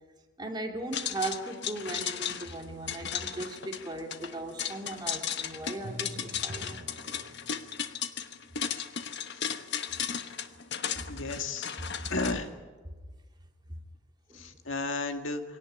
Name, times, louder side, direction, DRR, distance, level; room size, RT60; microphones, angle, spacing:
voice 1, 0.4-6.8 13.7-13.8 14.3-14.4, right 2 dB, 20° right, 3 dB, 2.6 m, -38 dB
sound 1, 0.9-12.3, left 8 dB, 60° left, 1.2 m, -35 dB
Drum, 5.8-7.9, equal, 45° right, 3.4 m, -44 dB
voice 2, 11.1-11.7 12.1-12.5 14.3-15.4, left 3 dB, 75° left, 6 dB, 2.0 m, -32 dB
23.5 x 18.0 x 9.6 m, 1.3 s
head